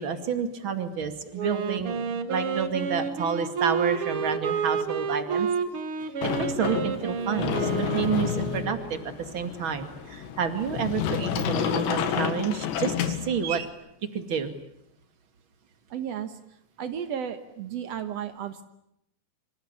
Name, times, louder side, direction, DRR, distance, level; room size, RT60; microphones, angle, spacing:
voice 1, 0.0-5.5 6.4-13.7 14.1-14.5, right 6 dB, 35° right, 7 dB, 2.3 m, -29 dB
Wind instrument woodwind instrument, 1.3-9.1, right 5 dB, 55° right, 1.5 m, -30 dB
Sliding door, 6.2-13.7, left 8 dB, 85° left, 4.1 m, -30 dB
voice 2, 15.9-16.4 16.8-18.6, right 8 dB, 80° right, 8 dB, 1.4 m, -33 dB
27.0 x 26.0 x 8.4 m, 0.79 s
omnidirectional pair, 4.9 m